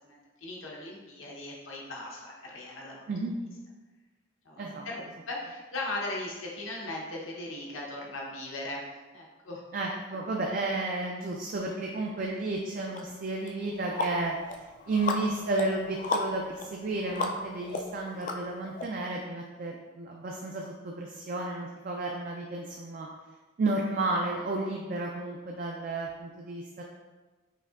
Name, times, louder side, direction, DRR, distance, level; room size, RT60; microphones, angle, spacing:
voice 1, 0.0-3.1 4.4-8.9 9.1-9.6, left 2 dB, 75° left, -2 dB, 0.9 m, -38 dB
voice 2, 9.7-23.1 23.6-26.8, right 2 dB, 45° right, -1 dB, 0.3 m, -32 dB
sound 1, 12.9-13.0 13.5-18.8, left 3 dB, 40° left, 0.3 m, -35 dB
5.4 x 2.7 x 2.4 m, 1.3 s
head